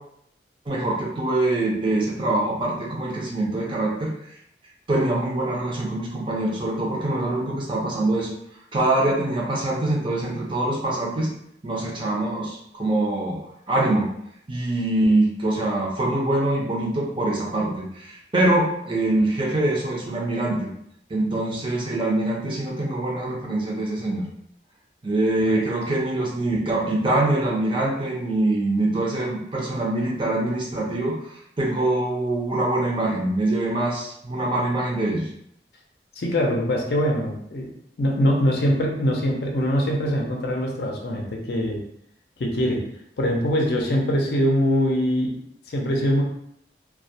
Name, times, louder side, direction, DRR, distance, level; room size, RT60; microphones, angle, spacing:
voice 1, 0.7-4.1 4.9-8.3 8.7-11.3 11.6-13.4 13.7-14.1 14.5-20.7 21.1-24.2 25.0-31.1 31.6-35.3, right 2 dB, 30° right, -2 dB, 0.5 m, -24 dB
voice 2, 36.2-37.7 38.0-41.8 42.4-42.8 43.2-45.4 45.7-46.2, equal, 65° left, 0 dB, 0.5 m, -23 dB
2.2 x 2.1 x 2.6 m, 0.72 s
head